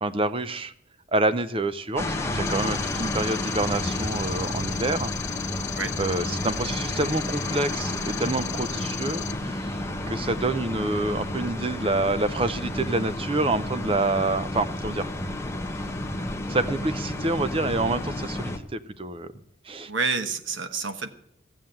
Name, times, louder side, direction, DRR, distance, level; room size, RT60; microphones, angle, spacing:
voice 1, 0.0-0.7 1.1-5.1 6.0-9.8 10.1-15.1 16.5-19.3 19.6-19.9, right 2 dB, 30° right, 13 dB, 0.6 m, -27 dB
sound 1, 2.0-18.6, left 1 dB, 15° left, 0.9 m, -31 dB
sound 2, 2.5-9.3, left 11 dB, 40° left, 0.5 m, -36 dB
voice 2, 19.9-21.1, right 4 dB, 90° right, 9 dB, 1.1 m, -28 dB
15.0 x 7.3 x 7.7 m, 0.69 s
head